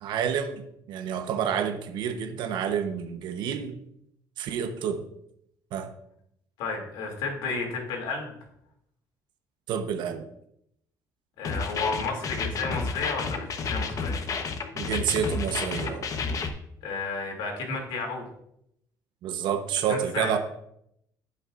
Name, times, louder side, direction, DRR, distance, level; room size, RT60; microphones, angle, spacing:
voice 1, 0.0-3.8 4.4-5.0 5.7-5.9 9.7-10.2 14.7-16.1 19.2-20.4, right 8 dB, 75° right, 6 dB, 1.0 m, -29 dB
voice 2, 6.6-8.3 11.4-14.2 16.8-18.2 19.9-20.4, left 4 dB, 85° left, 1 dB, 2.7 m, -32 dB
sound 1, 11.4-16.5, left 4 dB, 45° left, 1.0 m, -31 dB
16.0 x 5.9 x 2.5 m, 0.75 s
cardioid pair, 105°, 8 cm